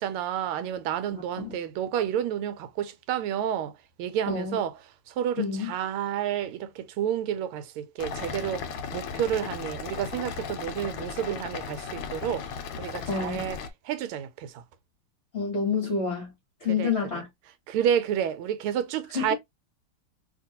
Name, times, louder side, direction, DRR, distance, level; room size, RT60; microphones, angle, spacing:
voice 1, 0.0-3.7 4.0-4.7 5.1-8.7 8.9-12.4 12.8-13.6 13.8-14.6 16.7-16.9 17.7-19.4, right 9 dB, 90° right, 1.5 m, -30 dB
voice 2, 1.1-1.5 4.3-4.6 5.4-5.7 13.1-13.5 15.3-16.3 16.6-17.3 19.1-19.3, left 5 dB, 45° left, 0.9 m, -28 dB
sound 1, 8.0-13.7, left 6 dB, 75° left, 1.3 m, -36 dB
2.9 x 2.8 x 2.7 m
omnidirectional pair, 2.3 m